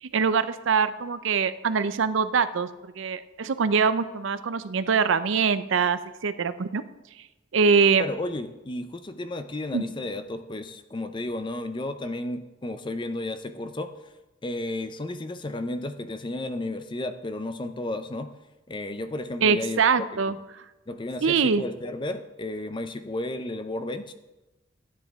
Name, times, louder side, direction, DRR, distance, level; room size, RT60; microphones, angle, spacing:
voice 1, 0.0-2.7 3.0-6.8 7.5-8.0 9.7-9.8 19.4-20.6 21.2-21.6, right 5 dB, 70° right, 13 dB, 0.5 m, -23 dB
voice 2, 8.0-14.1 14.4-18.3 18.7-20.3 20.9-24.1, left 2 dB, 25° left, 10 dB, 0.5 m, -33 dB
12.0 x 9.4 x 3.6 m, 1.0 s
head